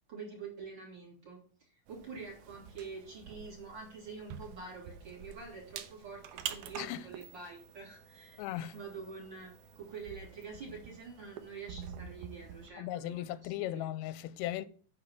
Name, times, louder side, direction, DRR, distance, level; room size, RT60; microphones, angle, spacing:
voice 1, 0.1-1.4 1.7-13.9, right 5 dB, 30° right, 2.9 m, -47 dB
sound 1, 1.9-12.7, right 8 dB, 75° right, 2.0 m, -48 dB
voice 2, 8.4-8.8 12.8-14.7, left 13 dB, 90° left, 2.5 m, -37 dB
8.7 x 4.8 x 5.9 m
omnidirectional pair, 4.4 m